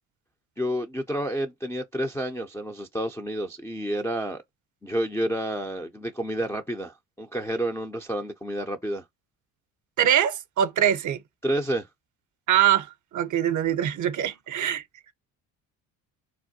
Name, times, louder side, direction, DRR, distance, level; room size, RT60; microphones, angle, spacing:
voice 1, 0.6-4.4 4.8-9.0 11.4-11.9, equal, 5° left, 0.3 m, -29 dB
voice 2, 10.0-11.2 12.5-14.8, right 10 dB, 50° right, 0.6 m, -23 dB
3.3 x 2.2 x 2.6 m
supercardioid pair, 75°, 40 cm